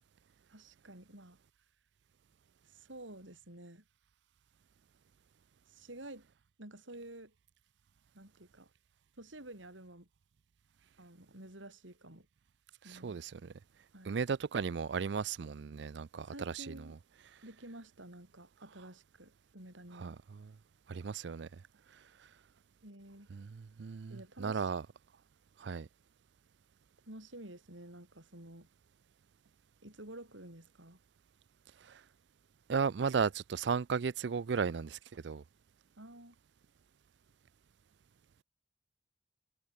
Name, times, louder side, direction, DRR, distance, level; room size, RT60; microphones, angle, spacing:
voice 1, 0.5-1.4 2.7-3.8 5.7-6.3 6.6-7.3 8.1-8.7 9.2-10.1 11.0-12.3 12.8-13.2 13.9-14.2 16.3-17.0 17.4-20.2 22.8-23.3 24.1-24.7 27.1-28.7 29.8-31.0 36.0-36.4, right 1 dB, 85° right, 7.5 m, -51 dB
voice 2, 12.9-13.5 14.0-16.8 20.0-20.5 20.9-21.5 23.3-24.8 25.6-25.9 31.9-32.0 32.7-35.4, right 6 dB, 65° right, 0.4 m, -35 dB
head